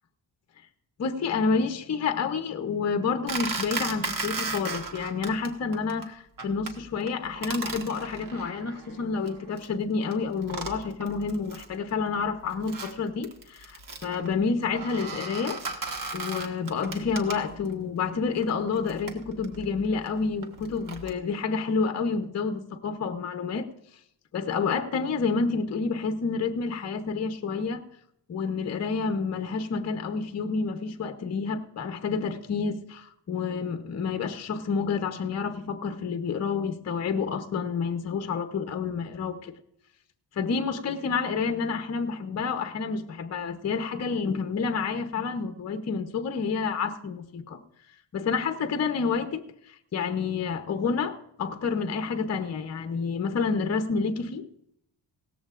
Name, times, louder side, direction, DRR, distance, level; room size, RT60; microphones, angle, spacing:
voice 1, 1.0-23.7 24.3-27.8 28.3-39.5 40.4-47.6 48.1-54.5, left 5 dB, 40° left, 0.8 m, -29 dB
sound 1, 3.3-5.5 5.7-6.1 6.4-6.7 7.1-9.7 10.1-10.2 10.4-11.8 12.1-17.7 18.4-21.1, right 3 dB, 50° right, 1.6 m, -36 dB
17.5 x 14.0 x 2.5 m
wide cardioid pair, 160°, 42 cm